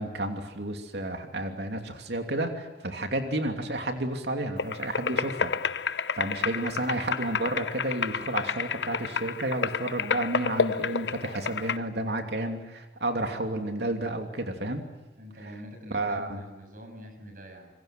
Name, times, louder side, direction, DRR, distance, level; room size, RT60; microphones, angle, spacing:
voice 1, 0.0-5.5 6.2-14.8 15.9-16.4, right 1 dB, 75° right, 4 dB, 2.9 m, -31 dB
sound 1, 4.6-11.8, left 6 dB, 85° left, 0.9 m, -30 dB
voice 2, 6.5-6.9 15.2-17.7, equal, 50° right, 5 dB, 7.0 m, -45 dB
27.0 x 24.0 x 7.7 m, 1.1 s
head